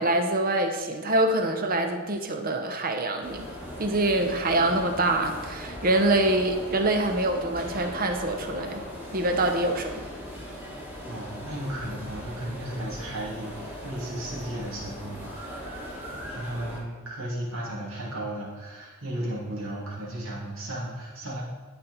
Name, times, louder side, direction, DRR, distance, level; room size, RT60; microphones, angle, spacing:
voice 1, 0.0-3.5 3.8-8.8 9.1-9.9, right 2 dB, 45° right, 5 dB, 0.8 m, -25 dB
sound 1, 3.2-16.8, equal, 10° right, 1.5 m, -39 dB
voice 2, 11.1-21.4, right 1 dB, 65° right, -5 dB, 2.5 m, -35 dB
12.5 x 4.4 x 4.1 m, 1.4 s
head